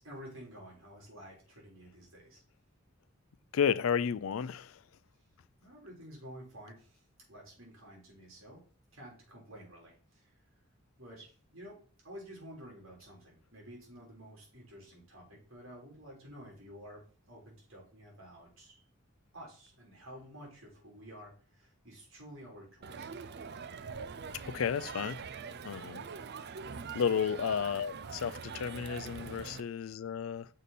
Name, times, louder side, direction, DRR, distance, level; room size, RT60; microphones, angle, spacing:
voice 1, 0.0-2.4 5.6-7.0 7.3-8.6 8.9-10.3 11.0-11.8 12.0-18.8 19.3-23.1 27.2-27.3, equal, 70° right, 3.9 m, -51 dB
voice 2, 3.5-4.8 24.4-25.2 25.6-26.0 26.9-30.5, left 7 dB, 75° left, 0.4 m, -32 dB
Crowd, 22.8-29.6, right 5 dB, 55° right, 0.5 m, -43 dB
6.4 x 5.1 x 4.2 m
head